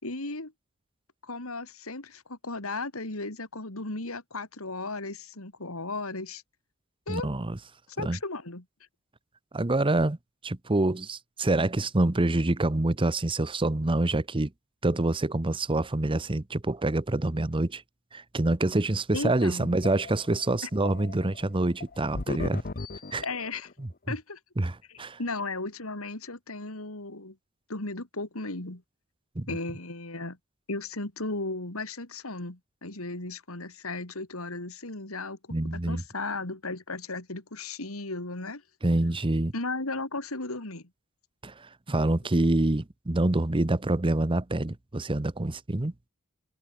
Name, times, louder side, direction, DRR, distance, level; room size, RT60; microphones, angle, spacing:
voice 1, 0.0-0.5 1.2-6.4 7.1-7.3 7.9-8.6 19.1-19.7 20.6-20.7 23.2-23.7 24.1-24.4 24.9-27.4 27.7-28.8 29.5-30.4 30.7-35.4 35.7-38.6 39.5-40.9, left 3 dB, 80° left, 3.4 m, -35 dB
voice 2, 7.1-7.6 8.0-8.2 9.5-10.2 10.4-14.5 14.8-17.8 18.1-22.6 23.1-23.2 23.8-23.9 24.6-25.2 29.4-29.6 35.5-36.0 38.8-39.5 41.4-45.9, right 2 dB, 25° right, 0.8 m, -26 dB
sound 1, 19.4-23.7, left 3 dB, 45° left, 1.0 m, -38 dB
head